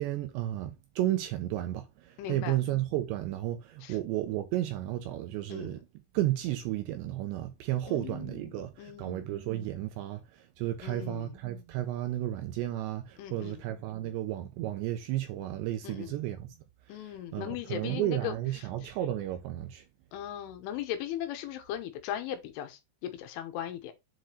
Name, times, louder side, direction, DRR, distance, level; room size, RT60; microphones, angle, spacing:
voice 1, 0.0-5.8 6.1-16.6 16.9-19.8, right 14 dB, 85° right, 2.6 m, -33 dB
voice 2, 2.2-2.6 3.8-4.0 5.5-5.7 7.9-9.3 10.8-11.3 13.2-13.6 15.8-16.2 16.9-18.3 20.1-23.9, left 11 dB, 80° left, 3.4 m, -38 dB
7.7 x 4.6 x 3.2 m
omnidirectional pair, 5.7 m